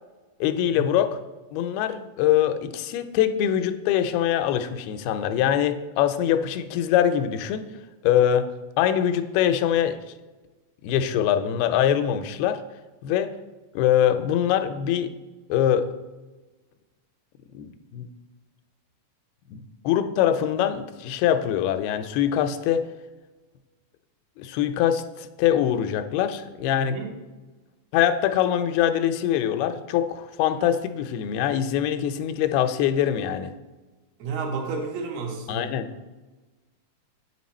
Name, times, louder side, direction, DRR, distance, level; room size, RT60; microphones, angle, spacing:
voice 1, 0.4-1.2 1.5-7.6 8.0-8.5 8.8-10.0 10.8-12.6 13.0-13.3 13.7-15.1 15.5-15.9 17.5-18.1 19.5-22.9 24.4-27.0 27.9-33.5 35.5-35.9, left 10 dB, 90° left, 9 dB, 2.5 m, -23 dB
voice 2, 26.8-27.1 34.2-35.7, right 4 dB, 90° right, 1 dB, 3.1 m, -31 dB
7.8 x 6.4 x 4.2 m, 1.2 s
omnidirectional pair, 4.3 m